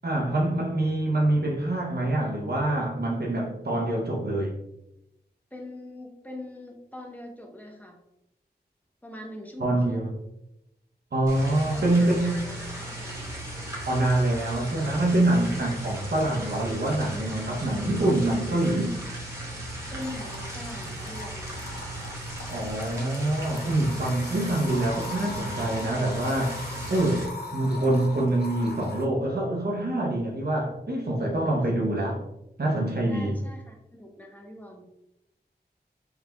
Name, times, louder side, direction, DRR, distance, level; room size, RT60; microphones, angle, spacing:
voice 1, 0.0-4.6 9.6-10.1 11.1-12.5 13.9-19.0 22.5-32.2 32.6-33.4, right 1 dB, 70° right, 0.7 m, -25 dB
voice 2, 5.5-8.0 9.0-10.1 11.3-13.2 15.7-15.8 19.9-21.5 31.6-31.7 33.1-34.9, left 1 dB, 10° left, 0.8 m, -42 dB
sound 1, 11.3-27.2, right 1 dB, 15° right, 1.3 m, -37 dB
sound 2, 20.0-29.1, left 2 dB, 65° left, 0.6 m, -41 dB
4.7 x 3.4 x 2.2 m
wide cardioid pair, 65°, 17 cm